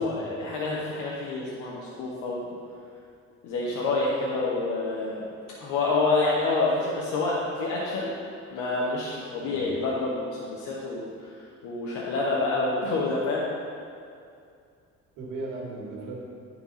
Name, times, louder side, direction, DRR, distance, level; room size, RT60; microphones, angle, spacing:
voice 1, 0.0-2.5 3.4-5.2 5.5-8.1 8.5-13.4, left 3 dB, 80° left, -5 dB, 1.1 m, -28 dB
voice 2, 15.2-16.2, right 2 dB, 85° right, -4 dB, 1.8 m, -37 dB
11.5 x 4.5 x 4.1 m, 2.4 s
cardioid pair, 100°, 31 cm